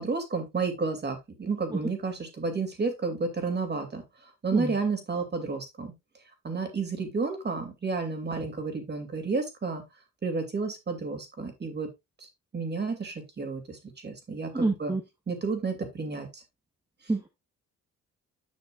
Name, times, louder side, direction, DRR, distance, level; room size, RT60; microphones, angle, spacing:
voice 1, 0.0-5.9 6.4-9.8 10.2-11.9 12.2-12.3 12.5-14.9 15.3-16.4, right 4 dB, 35° right, 5 dB, 2.8 m, -31 dB
voice 2, 14.5-15.0 17.1-17.3, right 2 dB, 15° right, 3 dB, 1.2 m, -27 dB
9.7 x 6.0 x 2.4 m, 0.20 s
cardioid pair, 90°, 30 cm